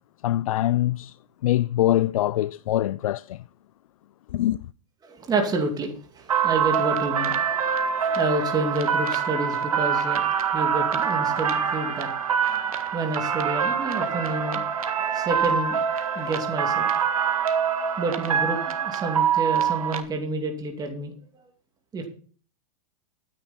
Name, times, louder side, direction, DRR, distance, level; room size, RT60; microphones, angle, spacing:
voice 1, 0.2-1.1 1.4-3.4 4.3-4.6, left 13 dB, 75° left, 0.4 m, -23 dB
voice 2, 5.0-12.1 12.5-12.6 12.9-14.6 14.9-15.8 16.2-16.9 18.0-21.1 21.9-22.1, right 2 dB, 20° right, 2.6 m, -29 dB
sound 1, 6.3-20.0, right 7 dB, 85° right, 1.6 m, -25 dB
13.0 x 9.6 x 4.4 m
hypercardioid pair, 110°, 18 cm